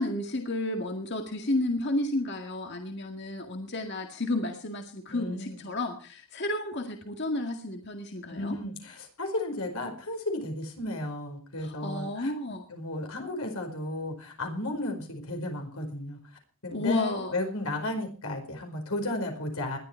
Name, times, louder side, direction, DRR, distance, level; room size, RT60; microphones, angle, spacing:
voice 1, 0.0-8.6 11.6-12.6 16.7-17.3, left 2 dB, 50° left, 4 dB, 2.0 m, -31 dB
voice 2, 5.1-5.6 8.3-12.3 12.7-16.2 16.6-19.8, left 1 dB, 80° left, 4 dB, 4.8 m, -34 dB
20.5 x 12.5 x 4.5 m, 0.39 s
head